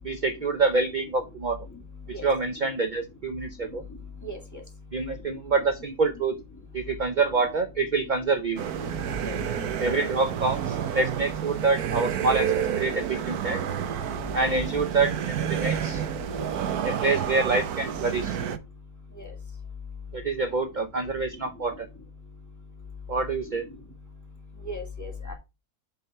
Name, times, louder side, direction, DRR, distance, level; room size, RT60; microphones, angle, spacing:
voice 1, 0.0-1.6 2.1-3.8 4.9-6.3 6.7-8.6 9.8-13.6 14.3-15.1 15.4-16.1 16.8-18.4 20.1-21.9 23.1-23.7, right 3 dB, 50° right, 7 dB, 0.5 m, -26 dB
voice 2, 4.2-4.6 9.2-9.4 19.2-19.3 24.7-25.3, left 1 dB, 10° left, 1 dB, 2.1 m, -36 dB
sound 1, 8.6-18.6, right 9 dB, 70° right, 1.3 m, -30 dB
8.0 x 3.8 x 5.4 m, 0.26 s
omnidirectional pair, 1.7 m